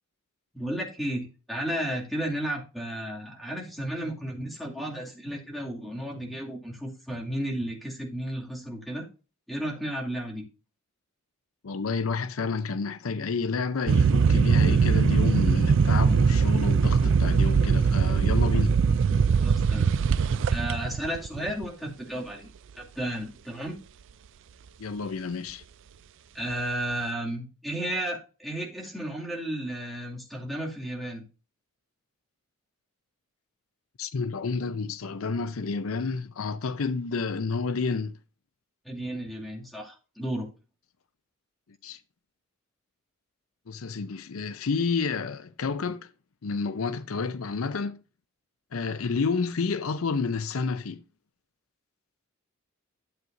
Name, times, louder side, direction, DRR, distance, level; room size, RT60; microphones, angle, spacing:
voice 1, 0.5-9.0 9.5-10.4 19.4-19.9 20.2-22.5 22.7-23.8 26.3-31.2 38.8-40.5, right 1 dB, ahead, 2.3 m, -33 dB
voice 2, 11.6-18.7 24.8-25.6 34.0-38.1 41.8-42.0 43.7-46.1 46.4-48.0 48.7-51.0, left 4 dB, 75° left, 0.6 m, -30 dB
sound 1, 13.9-21.6, right 5 dB, 60° right, 0.4 m, -21 dB
12.0 x 7.8 x 2.6 m
head